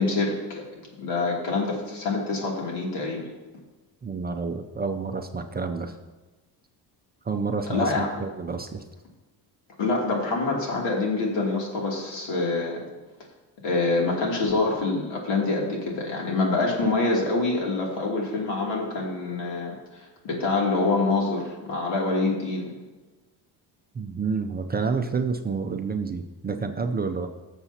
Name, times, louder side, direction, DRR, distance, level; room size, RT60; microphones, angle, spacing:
voice 1, 0.0-3.2 7.7-8.1 9.8-12.8 13.6-22.7, left 3 dB, 75° left, -2 dB, 2.8 m, -26 dB
voice 2, 4.0-6.0 7.2-8.8 23.9-27.3, right 4 dB, 25° right, 5 dB, 0.4 m, -29 dB
17.0 x 7.0 x 2.8 m, 1.2 s
cardioid pair, 140°, 43 cm